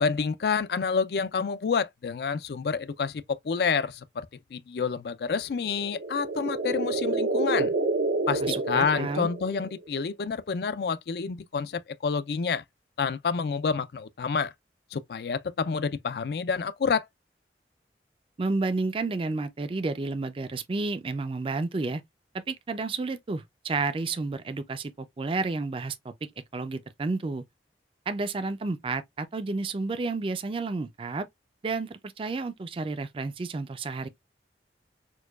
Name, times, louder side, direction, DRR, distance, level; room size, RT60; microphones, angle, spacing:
voice 1, 0.0-4.3 4.5-7.7 8.3-12.6 13.0-14.5 14.9-17.1, left 5 dB, 60° left, 0.4 m, -28 dB
sound 1, 5.6-9.9, right 3 dB, 90° right, 0.6 m, -28 dB
voice 2, 8.4-9.3 18.4-22.0 22.5-26.1 26.5-27.4 28.1-31.3 31.6-34.1, right 3 dB, 30° right, 0.4 m, -31 dB
4.5 x 2.3 x 2.3 m
head